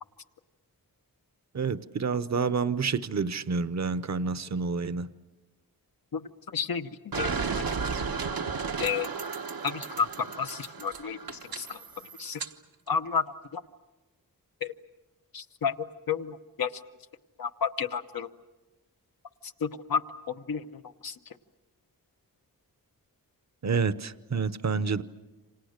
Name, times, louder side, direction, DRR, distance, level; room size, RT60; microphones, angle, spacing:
voice 1, 1.5-5.1 23.6-25.0, right 5 dB, 50° right, 0.8 m, -28 dB
voice 2, 6.5-7.4 8.8-9.1 9.6-10.1 10.4-11.8 12.2-12.4 12.9-13.2 13.5-13.6 14.6-14.7 15.3-15.7 16.1-16.7 17.4-18.3 19.6-20.0 20.3-20.6 21.0-21.1, left 6 dB, 80° left, 1.1 m, -31 dB
sound 1, 7.1-12.5, right 5 dB, 90° right, 1.2 m, -34 dB
28.5 x 26.5 x 6.6 m
wide cardioid pair, 90°, 35 cm